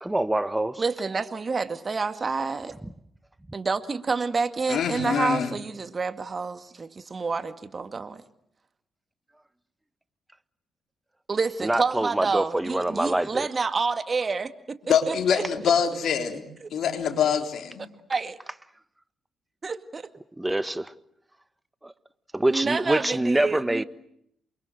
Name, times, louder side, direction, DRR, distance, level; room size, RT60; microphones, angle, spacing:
voice 1, 0.0-0.8 2.8-2.9 11.6-13.5 20.4-20.9 21.8-21.9 22.3-23.8, right 1 dB, 15° right, 1.5 m, -25 dB
voice 2, 0.8-2.7 3.5-8.2 11.3-14.8 15.1-15.4 16.6-16.7 18.1-18.3 19.6-20.1 22.5-23.8, right 4 dB, 40° right, 2.0 m, -28 dB
voice 3, 4.7-5.5 14.9-16.5 16.7-17.9, left 7 dB, 60° left, 3.8 m, -24 dB
28.5 x 24.0 x 7.9 m
hypercardioid pair, 40°, 0 cm